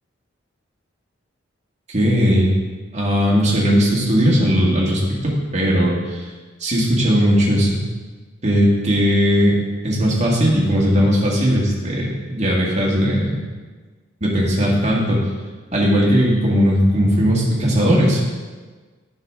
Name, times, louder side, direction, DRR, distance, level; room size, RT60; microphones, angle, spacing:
voice 1, 1.9-2.5 2.9-6.3 6.6-7.8 8.4-9.6 9.8-13.4 14.2-15.2 15.7-18.2, equal, 35° right, -4 dB, 1.8 m, -18 dB
9.4 x 6.0 x 3.7 m, 1.4 s
head